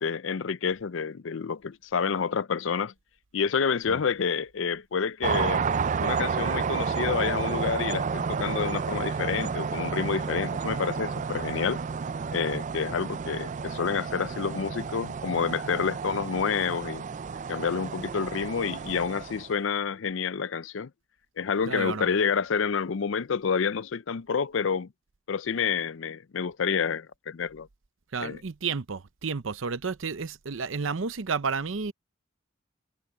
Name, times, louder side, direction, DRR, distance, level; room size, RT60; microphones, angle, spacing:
voice 1, 0.0-2.9 3.3-5.6 6.0-11.8 12.3-17.0 17.5-20.9 21.4-24.9 25.3-27.7 28.2-28.4, left 6 dB, 70° left, 0.5 m, -28 dB
sound 1, 5.2-19.5, right 5 dB, 40° right, 0.4 m, -31 dB
voice 2, 21.7-22.1 28.1-31.9, right 5 dB, 75° right, 0.7 m, -31 dB
head